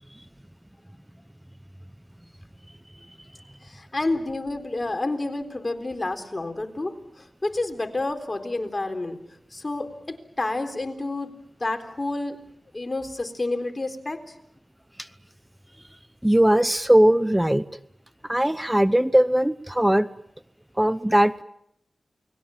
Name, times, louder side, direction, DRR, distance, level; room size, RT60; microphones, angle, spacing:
voice 1, 3.6-9.2 9.5-12.4 12.7-14.4, left 2 dB, 35° left, 6 dB, 4.0 m, -29 dB
voice 2, 16.2-17.6 18.3-20.1 20.8-21.4, right 1 dB, 10° right, 15 dB, 0.9 m, -19 dB
29.0 x 21.0 x 7.4 m, 0.77 s
cardioid pair, 50°, 0 cm